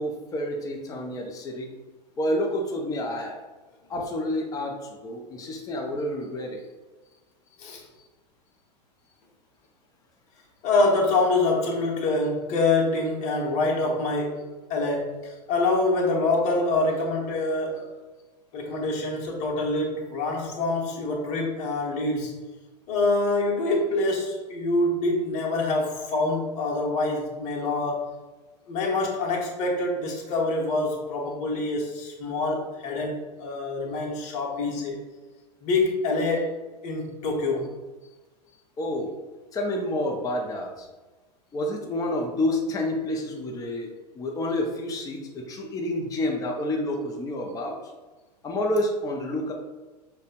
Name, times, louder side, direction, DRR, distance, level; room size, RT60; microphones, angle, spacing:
voice 1, 0.0-1.7 2.2-3.4 3.9-6.6 38.8-39.1 39.5-40.9 41.5-47.8 48.4-49.5, left 1 dB, 15° left, 1 dB, 0.6 m, -29 dB
voice 2, 10.6-17.8 18.5-22.3 22.9-28.1 28.7-35.0 35.6-36.6 36.8-37.7, left 2 dB, 35° left, -2 dB, 1.0 m, -25 dB
6.4 x 2.2 x 2.4 m, 1.2 s
figure-of-eight pair, 95°, 21 cm